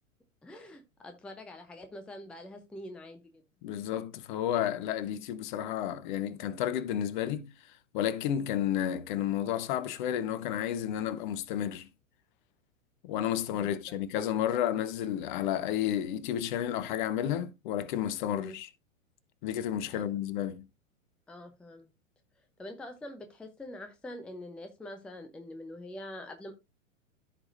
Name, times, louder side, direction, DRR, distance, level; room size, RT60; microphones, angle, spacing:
voice 1, 0.4-3.4 13.6-13.7 18.3-18.5 19.9-20.0 21.3-21.9 22.6-26.5, left 1 dB, ahead, 0.6 m, -45 dB
voice 2, 3.6-11.9 13.0-18.7 19.4-20.6, left 10 dB, 35° left, 0.8 m, -31 dB
14.5 x 4.9 x 2.5 m
figure-of-eight pair, 100°, 42 cm